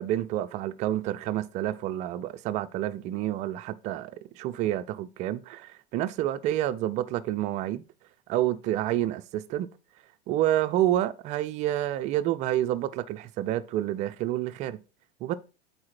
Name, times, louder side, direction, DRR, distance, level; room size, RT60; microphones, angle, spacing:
voice 1, 0.0-7.8 8.3-9.7 10.3-14.8 15.2-15.3, right 13 dB, 25° right, 0.4 m, -29 dB
8.5 x 4.1 x 4.2 m
figure-of-eight pair, 90°, 32 cm